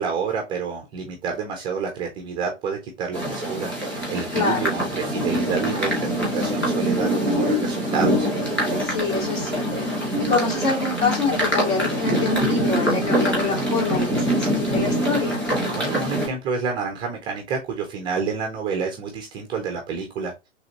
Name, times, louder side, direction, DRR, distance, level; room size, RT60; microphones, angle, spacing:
voice 1, 0.0-8.3 15.7-20.5, right 5 dB, 15° right, 0.5 m, -29 dB
sound 1, 3.1-16.3, equal, 5° left, 2.3 m, -24 dB
voice 2, 4.3-4.7 8.8-15.4, left 4 dB, 50° left, 3.0 m, -26 dB
4.9 x 3.3 x 2.8 m
figure-of-eight pair, 115°, 37 cm